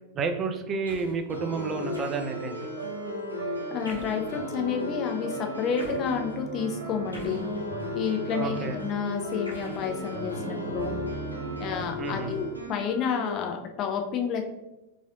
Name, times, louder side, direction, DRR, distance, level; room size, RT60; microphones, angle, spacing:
voice 1, 0.1-2.6 8.4-8.8 12.0-12.3, right 4 dB, 25° right, 6 dB, 0.5 m, -30 dB
sound 1, 0.8-1.2 1.9-2.5 3.8-4.3 5.8-6.1 7.1-8.0 9.4-10.5, equal, 90° right, 1.2 m, -46 dB
sound 2, 1.3-13.3, left 2 dB, 85° left, 0.7 m, -36 dB
sound 3, 1.7-12.5, right 4 dB, 50° right, 1.1 m, -38 dB
voice 2, 3.7-7.4 7.9-11.0 11.6-14.5, left 7 dB, 35° left, 3 dB, 0.6 m, -30 dB
5.0 x 3.3 x 2.5 m, 0.98 s
figure-of-eight pair, 90°, 0 cm